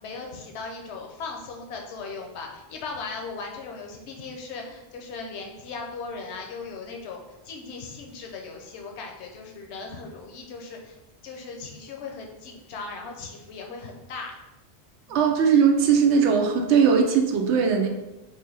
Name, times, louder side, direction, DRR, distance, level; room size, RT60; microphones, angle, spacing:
voice 1, 0.0-11.0 11.2-14.3 15.1-15.2, left 4 dB, 75° left, 1 dB, 0.9 m, -38 dB
voice 2, 15.1-17.9, right 6 dB, 80° right, 3 dB, 0.9 m, -19 dB
3.3 x 2.5 x 3.8 m, 1.0 s
omnidirectional pair, 1.2 m